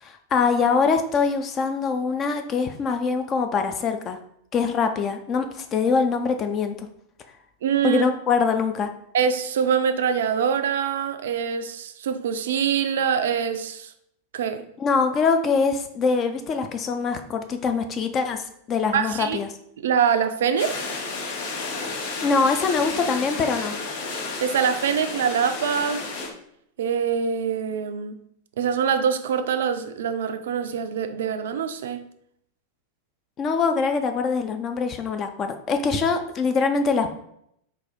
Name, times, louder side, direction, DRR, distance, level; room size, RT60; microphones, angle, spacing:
voice 1, 0.0-4.2 4.5-6.9 7.8-8.9 14.8-19.5 22.2-23.8 33.4-37.2, left 5 dB, 30° left, 0.4 m, -23 dB
voice 2, 7.6-8.0 9.1-13.9 14.3-14.6 18.9-19.4 19.8-20.8 24.4-26.0 26.8-28.2 28.6-32.0, right 7 dB, 60° right, 0.3 m, -24 dB
sound 1, 20.6-26.3, left 3 dB, 65° left, 1.5 m, -32 dB
4.0 x 2.3 x 4.1 m
figure-of-eight pair, 90°, 0 cm